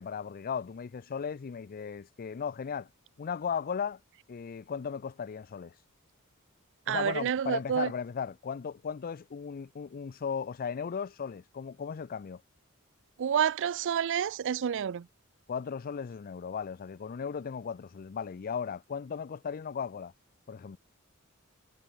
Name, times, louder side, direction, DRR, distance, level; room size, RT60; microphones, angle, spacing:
voice 1, 0.0-2.9 3.2-4.0 4.3-5.7 6.9-12.4 15.5-20.1 20.5-20.8, left 6 dB, 40° left, 0.4 m, -36 dB
voice 2, 6.9-7.9 13.2-15.1, right 8 dB, 60° right, 0.4 m, -29 dB
head